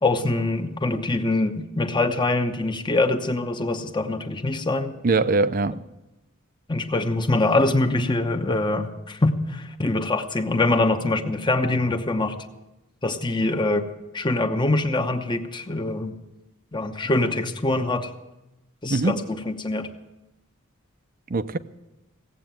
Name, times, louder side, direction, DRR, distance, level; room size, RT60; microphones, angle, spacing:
voice 1, 0.0-5.0 6.7-12.3 13.0-13.9 14.1-16.1 16.7-18.1 18.8-19.9, left 2 dB, 20° left, 0.9 m, -24 dB
voice 2, 5.0-5.8 18.9-19.2 21.3-21.6, right 3 dB, 40° right, 0.6 m, -22 dB
17.0 x 8.2 x 9.0 m
head